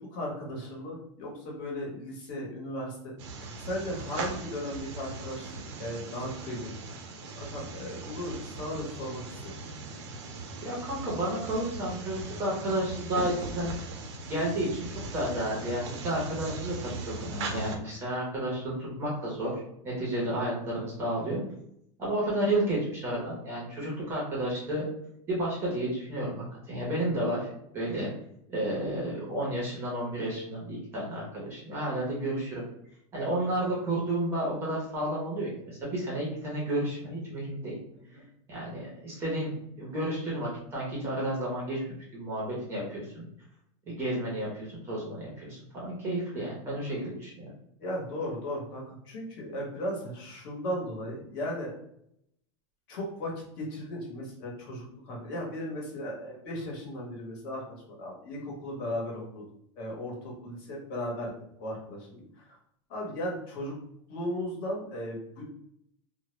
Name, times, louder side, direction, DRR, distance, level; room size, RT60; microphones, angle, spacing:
voice 1, 0.0-3.1 3.4-5.5 5.8-6.7 7.3-9.4 33.3-33.4 38.1-38.2 44.2-44.3 47.8-51.7 52.9-53.3 53.6-57.6 57.9-59.4 59.8-61.3 61.6-62.6 62.9-63.7 64.1-65.4, left 1 dB, 50° left, -2 dB, 0.9 m, -36 dB
sound 1, 3.2-17.8, right 3 dB, 70° right, 0.5 m, -39 dB
voice 2, 10.6-13.7 14.2-14.9 15.1-21.4 22.0-24.9 25.3-28.1 28.5-32.7 33.1-37.8 38.5-43.2 43.9-47.5, right 1 dB, 15° right, -4 dB, 0.6 m, -31 dB
2.0 x 2.0 x 3.0 m, 0.75 s
supercardioid pair, 180°, 15 cm